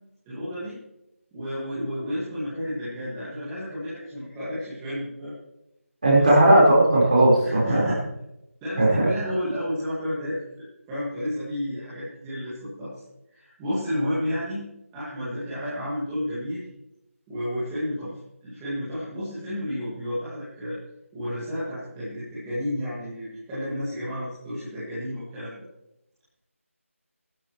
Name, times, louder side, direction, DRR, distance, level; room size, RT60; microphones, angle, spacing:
voice 1, 0.3-0.8 1.3-5.3 6.1-6.3 7.4-8.0 8.6-13.0 13.3-14.6 14.9-16.6 17.3-20.8 21.1-25.7, equal, 5° right, -13 dB, 1.9 m, -31 dB
voice 2, 6.0-7.8 8.8-9.1, right 1 dB, 30° right, -4 dB, 4.2 m, -17 dB
16.0 x 12.5 x 3.1 m, 0.88 s
figure-of-eight pair, 175°, 8 cm